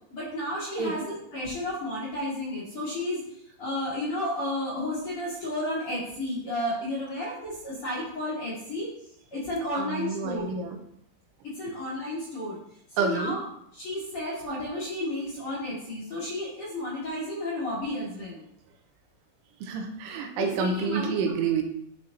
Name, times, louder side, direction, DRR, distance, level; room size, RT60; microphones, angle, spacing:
voice 1, 0.1-3.2 3.6-8.9 9.3-10.5 11.4-12.6 12.9-13.5 13.7-18.4 20.4-21.1, left 1 dB, 45° left, -7 dB, 1.9 m, -32 dB
voice 2, 9.8-10.8 13.0-13.4 19.6-21.6, right 5 dB, 85° right, 4 dB, 3.4 m, -28 dB
10.0 x 6.1 x 2.8 m, 0.72 s
omnidirectional pair, 5.4 m